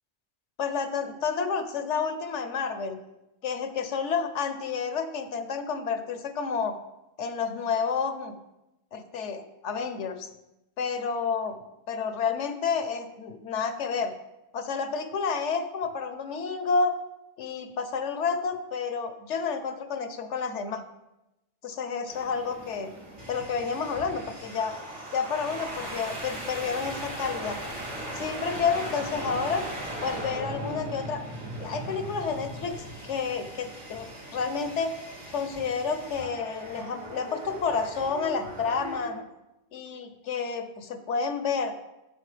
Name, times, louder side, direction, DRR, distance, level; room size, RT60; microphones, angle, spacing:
voice 1, 0.6-3.0 3.4-6.8 7.2-8.4 8.9-10.3 10.8-11.6 11.9-14.1 14.5-16.9 17.4-20.8 21.6-23.0 23.3-24.7 25.1-27.6 28.1-29.6 30.0-31.2 31.6-32.8 33.0-34.9 35.3-39.2 39.7-41.7, left 5 dB, 90° left, 9 dB, 1.1 m, -30 dB
sound 1, 22.1-39.1, right 1 dB, 90° right, 3.6 m, -38 dB
10.0 x 6.3 x 3.3 m, 0.97 s
omnidirectional pair, 1.2 m